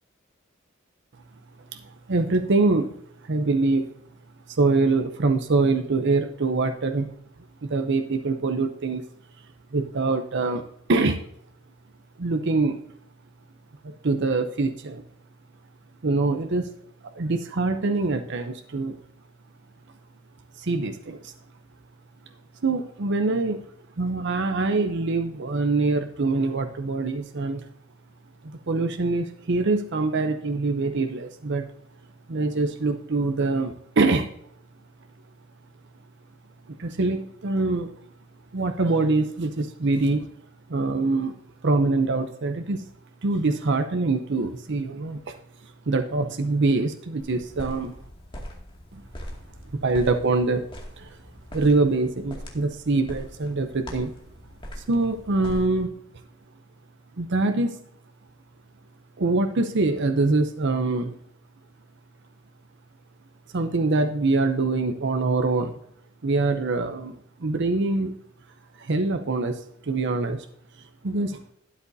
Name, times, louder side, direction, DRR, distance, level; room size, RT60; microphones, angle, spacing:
voice 1, 2.1-3.0 3.2-3.9 4.6-7.1 7.6-9.0 9.7-10.6 10.9-11.2 12.2-12.8 13.8-15.0 16.0-16.7 17.2-19.0 20.6-21.3 22.6-23.6 24.0-27.6 28.4-31.6 32.3-34.3 36.7-37.9 38.5-40.2 40.7-41.3 41.6-42.9 43.2-45.3 45.9-47.9 48.9-49.0 49.8-50.7 51.0-51.1 51.5-54.1 54.8-55.9 57.2-57.7 59.2-61.2 63.5-65.8 66.2-68.2 68.8-70.5 71.0-71.4, right 3 dB, 60° right, 7 dB, 0.7 m, -24 dB
sound 1, 47.2-55.8, equal, 25° left, 2.2 m, -41 dB
12.0 x 9.7 x 2.7 m, 0.71 s
head